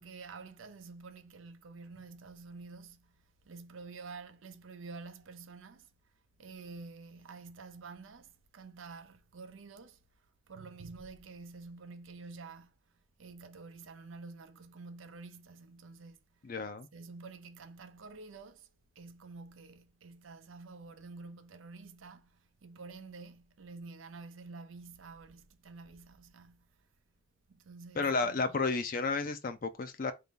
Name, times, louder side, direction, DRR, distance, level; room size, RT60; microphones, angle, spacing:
voice 1, 0.0-5.9 6.4-16.5 16.9-18.7 19.0-26.9 27.5-28.6, right 4 dB, 90° right, 0.6 m, -49 dB
voice 2, 16.4-16.9 28.0-30.1, left 4 dB, 45° left, 0.4 m, -32 dB
3.6 x 2.7 x 3.6 m
head